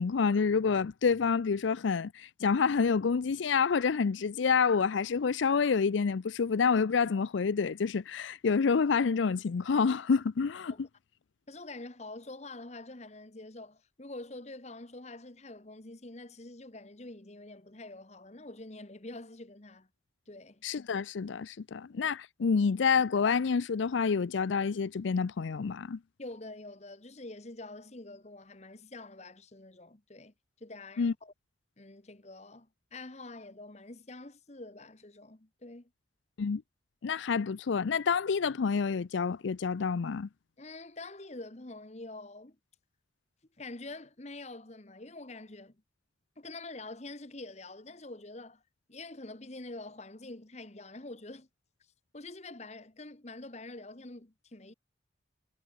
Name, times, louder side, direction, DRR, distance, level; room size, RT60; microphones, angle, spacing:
voice 1, 0.0-10.7 20.6-26.0 31.0-31.1 36.4-36.6 37.0-40.3, left 5 dB, 80° left, 0.5 m, -28 dB
voice 2, 11.5-19.9 20.3-20.6 26.2-31.3 31.8-35.9 40.6-42.6 43.6-45.8 46.4-48.6 48.9-51.5 52.1-54.7, left 2 dB, 35° left, 1.3 m, -46 dB
head